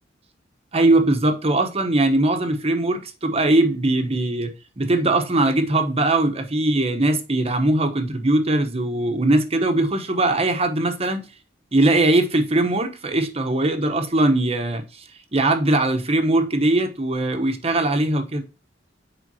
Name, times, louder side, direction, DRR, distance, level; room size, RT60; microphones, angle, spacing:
voice 1, 0.7-11.2 11.7-15.0 15.3-18.4, right 2 dB, 35° right, 1.0 m, -20 dB
7.4 x 5.0 x 2.8 m
head